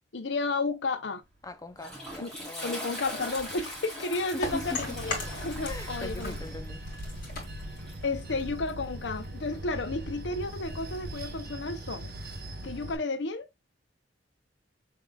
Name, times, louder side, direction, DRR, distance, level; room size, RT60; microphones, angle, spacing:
voice 1, 0.1-1.2 2.2-2.3 2.6-6.4 8.0-12.1 12.6-13.5, left 3 dB, 70° left, 0.7 m, -32 dB
Toilet flush, 1.3-9.6, equal, 5° left, 2.2 m, -43 dB
voice 2, 1.4-2.8 4.3-5.0 5.7-6.8, left 2 dB, 20° left, 0.6 m, -40 dB
sound 1, 3.0-5.9 6.2-8.6, left 3 dB, 50° left, 2.1 m, -39 dB
Bell / Train, 4.4-13.0, right 1 dB, 55° right, 1.0 m, -40 dB
5.3 x 3.7 x 2.3 m
head